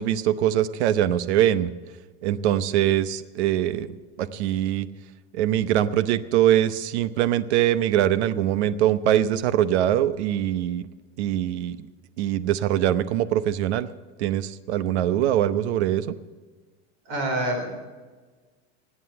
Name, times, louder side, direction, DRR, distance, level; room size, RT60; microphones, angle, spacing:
voice 1, 0.0-1.7 2.2-3.9 4.2-4.9 5.3-10.8 11.2-11.8 12.2-13.9 14.2-16.1, right 11 dB, 85° right, 14 dB, 0.9 m, -23 dB
voice 2, 17.1-17.7, right 1 dB, 40° right, 4 dB, 3.7 m, -26 dB
18.5 x 8.4 x 6.8 m, 1.4 s
supercardioid pair, 170°, 33 cm